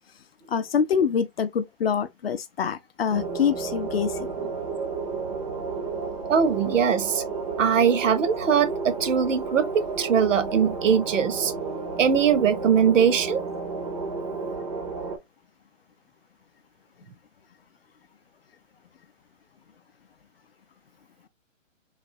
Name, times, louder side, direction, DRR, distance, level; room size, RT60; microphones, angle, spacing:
voice 1, 0.5-4.5, left 7 dB, 50° left, 0.4 m, -25 dB
sound 1, 3.1-15.2, right 4 dB, 30° right, 0.4 m, -32 dB
voice 2, 6.3-7.2 7.6-11.5 12.0-13.4, right 7 dB, 70° right, 0.7 m, -21 dB
3.2 x 2.4 x 2.5 m
hypercardioid pair, 145°, 40 cm